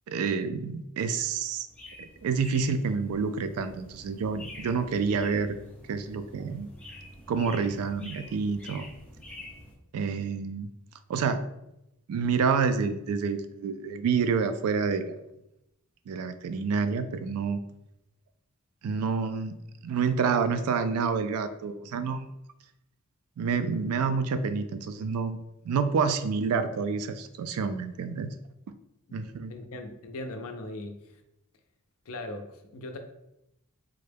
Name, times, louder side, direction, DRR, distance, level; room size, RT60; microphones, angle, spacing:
voice 1, 0.1-1.7 2.0-5.6 5.9-6.7 7.3-8.9 9.9-10.7 11.1-11.4 12.1-15.2 16.1-17.6 18.8-19.6 19.8-22.3 23.4-28.3 28.7-28.8 29.1-29.5, right 5 dB, 75° right, 12 dB, 0.3 m, -28 dB
sound 1, 1.7-9.7, left 1 dB, 5° left, 0.6 m, -47 dB
voice 2, 29.5-31.0 32.1-33.0, left 2 dB, 70° left, 5 dB, 0.5 m, -39 dB
3.6 x 2.1 x 3.3 m, 0.85 s
head